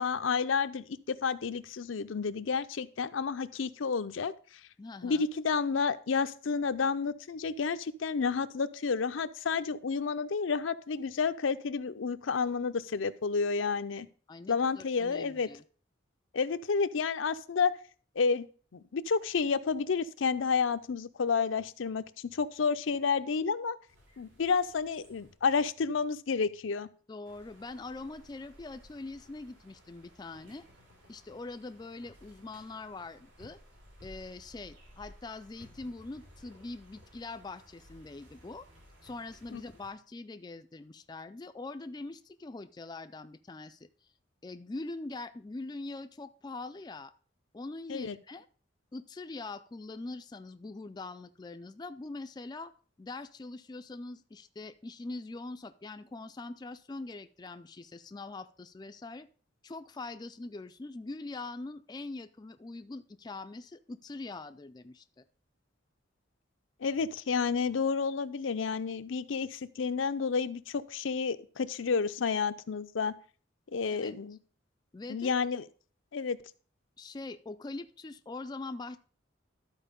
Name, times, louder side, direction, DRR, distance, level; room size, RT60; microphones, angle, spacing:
voice 1, 0.0-4.3 5.0-14.1 14.5-15.5 16.3-17.7 18.2-18.5 18.7-23.8 24.2-26.9 39.5-39.6 47.9-48.2 66.8-73.1 73.7-74.4 75.1-75.7 76.1-76.4, left 5 dB, 85° left, 11 dB, 0.5 m, -30 dB
voice 2, 4.8-5.3 14.3-15.6 27.1-30.6 31.1-33.6 34.0-38.7 39.0-43.9 44.4-47.1 47.5-48.5 48.9-52.7 53.0-59.3 59.6-65.2 73.9-74.2 74.9-75.4 77.0-79.0, left 3 dB, 20° left, 9 dB, 0.3 m, -43 dB
sound 1, 23.9-25.3 27.3-39.9, equal, 80° right, 3.2 m, -57 dB
12.5 x 4.5 x 5.1 m, 0.40 s
head